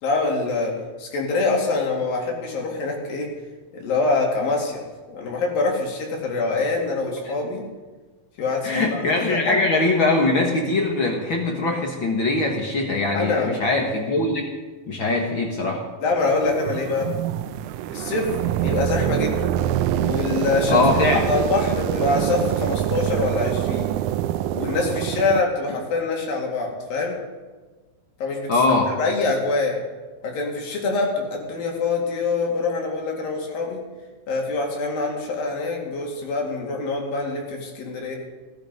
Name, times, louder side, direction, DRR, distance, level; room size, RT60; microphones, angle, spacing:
voice 1, 0.0-3.3 3.7-4.8 5.1-7.6 8.4-9.6 13.1-13.6 16.0-17.1 17.9-18.3 18.6-19.5 20.0-20.8 21.1-23.9 24.5-27.2 28.2-28.5 29.0-29.8 30.2-33.8 34.3-38.2, left 3 dB, 80° left, 0 dB, 4.1 m, -25 dB
voice 2, 8.6-14.5 14.9-15.8 20.7-21.3 28.5-28.9, left 2 dB, 50° left, 1 dB, 1.6 m, -21 dB
sound 1, 16.2-25.4, right 12 dB, 85° right, 1.7 m, -25 dB
18.0 x 11.5 x 5.2 m, 1.3 s
omnidirectional pair, 4.0 m